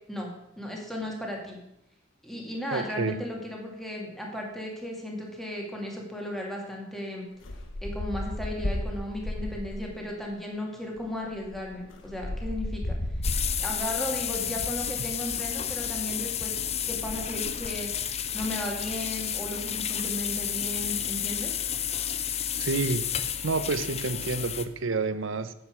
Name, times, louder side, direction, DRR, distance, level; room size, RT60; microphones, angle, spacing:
voice 1, 0.6-1.6 2.2-7.3 7.8-13.0 13.6-16.5 16.9-17.9 18.3-21.5, left 1 dB, ahead, -1 dB, 2.4 m, -35 dB
voice 2, 2.7-3.2 15.0-15.1 22.6-23.0 23.4-25.5, right 4 dB, 70° right, 13 dB, 0.7 m, -29 dB
sound 1, 7.4-10.0 11.0-11.1 11.3-14.0, left 1 dB, 75° left, 1.2 m, -33 dB
sound 2, 13.2-24.6, left 9 dB, 30° left, 0.6 m, -31 dB
9.8 x 7.4 x 6.3 m, 0.82 s
head